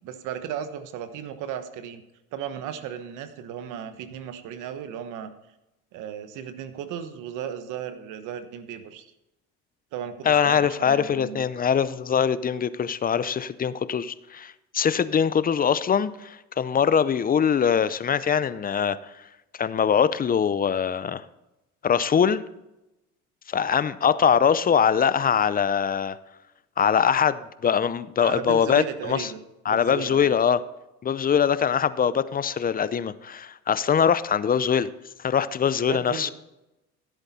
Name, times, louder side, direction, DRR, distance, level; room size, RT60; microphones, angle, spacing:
voice 1, 0.0-2.0 2.3-5.3 5.9-9.0 9.9-11.5 28.2-29.4 29.7-30.3 35.9-36.3, right 9 dB, 70° right, 10 dB, 1.1 m, -35 dB
voice 2, 10.3-19.0 19.6-21.2 21.8-22.4 23.5-26.2 26.8-29.3 29.7-30.6 31.0-34.9 35.2-36.3, left 7 dB, 30° left, 16 dB, 0.6 m, -22 dB
14.5 x 8.1 x 4.2 m, 0.95 s
supercardioid pair, 90°, 31 cm